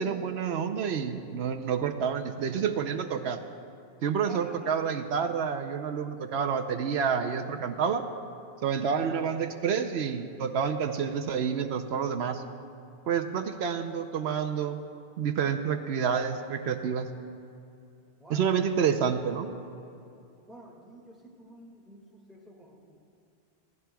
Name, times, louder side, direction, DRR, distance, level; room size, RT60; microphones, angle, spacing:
voice 1, 0.0-3.4 4.0-8.0 8.6-12.4 13.1-14.8 15.2-17.1 18.3-19.5, right 7 dB, 85° right, 6 dB, 1.0 m, -29 dB
voice 2, 4.3-4.8 18.2-18.7 20.5-22.8, right 1 dB, ahead, -4 dB, 1.9 m, -50 dB
27.0 x 16.0 x 2.3 m, 2.6 s
omnidirectional pair, 1.0 m